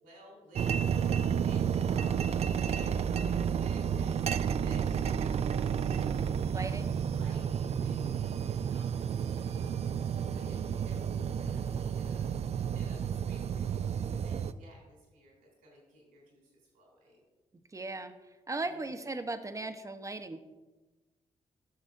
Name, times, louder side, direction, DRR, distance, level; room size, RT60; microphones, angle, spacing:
voice 1, 0.0-17.2 18.6-18.9, right 1 dB, 90° right, -3 dB, 3.1 m, -56 dB
sound 1, 0.6-14.5, right 7 dB, 50° right, 0.4 m, -31 dB
voice 2, 6.5-6.9 17.7-18.1 18.5-20.4, right 2 dB, 25° right, 8 dB, 0.8 m, -37 dB
13.5 x 6.2 x 2.6 m, 1.2 s
supercardioid pair, 50°, 14 cm